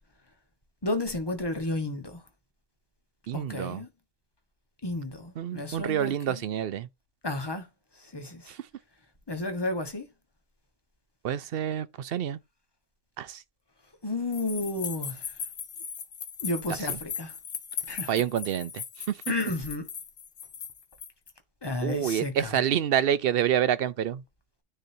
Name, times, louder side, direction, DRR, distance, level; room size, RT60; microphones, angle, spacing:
voice 1, 0.8-2.2 3.3-3.9 4.8-6.4 7.2-7.7 7.9-8.5 9.3-10.1 14.0-15.4 16.4-17.4 17.9-18.1 19.3-19.9 21.6-22.6, left 2 dB, 20° left, 1.3 m, -32 dB
voice 2, 3.3-3.8 5.4-6.9 8.5-8.6 11.2-12.4 13.2-13.4 18.1-19.2 21.8-24.2, right 10 dB, 60° right, 0.7 m, -28 dB
sound 1, 14.3-21.3, left 7 dB, 70° left, 1.3 m, -38 dB
9.9 x 4.0 x 2.7 m
omnidirectional pair, 1.2 m